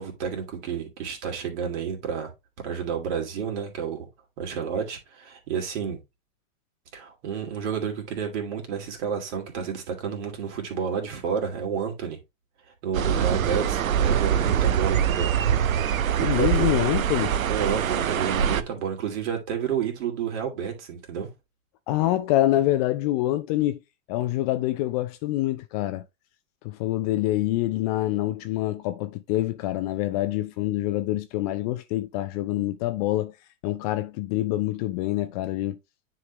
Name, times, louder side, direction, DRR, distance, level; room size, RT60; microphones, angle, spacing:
voice 1, 0.0-2.3 2.6-4.1 4.4-6.0 6.9-12.2 12.8-15.3 16.2-16.7 17.5-21.3, right 7 dB, 55° right, 2.7 m, -30 dB
sound 1, 12.9-18.6, right 9 dB, 80° right, 0.8 m, -24 dB
voice 2, 16.2-17.4 21.9-23.8 24.1-26.0 26.6-33.3 33.6-35.8, left 15 dB, 30° left, 0.4 m, -26 dB
9.8 x 3.8 x 3.0 m
hypercardioid pair, 105°, 41 cm